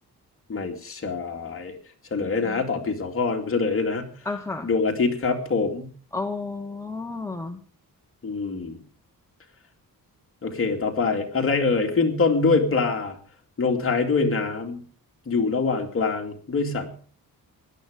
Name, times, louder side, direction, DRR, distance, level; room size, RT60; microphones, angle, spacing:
voice 1, 0.5-1.7 2.1-4.0 4.6-5.9 8.2-8.8 10.4-13.1 13.6-14.8 15.3-16.9, left 4 dB, 40° left, 3 dB, 2.5 m, -24 dB
voice 2, 2.2-2.6 4.2-4.7 6.1-7.6, left 3 dB, 10° left, 4 dB, 0.9 m, -32 dB
17.0 x 11.5 x 5.2 m, 0.42 s
wide cardioid pair, 180°, 36 cm